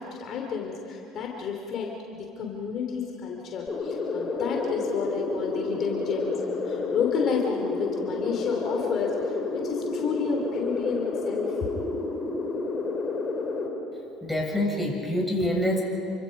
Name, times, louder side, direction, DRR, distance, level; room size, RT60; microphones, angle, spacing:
voice 1, 0.0-11.7, left 6 dB, 50° left, 1 dB, 3.4 m, -31 dB
sound 1, 3.7-13.7, left 3 dB, 35° left, 4.7 m, -30 dB
voice 2, 14.2-15.8, left 1 dB, 5° left, -2 dB, 7.3 m, -26 dB
29.0 x 25.0 x 5.4 m, 2.8 s
hypercardioid pair, 70°, 0 cm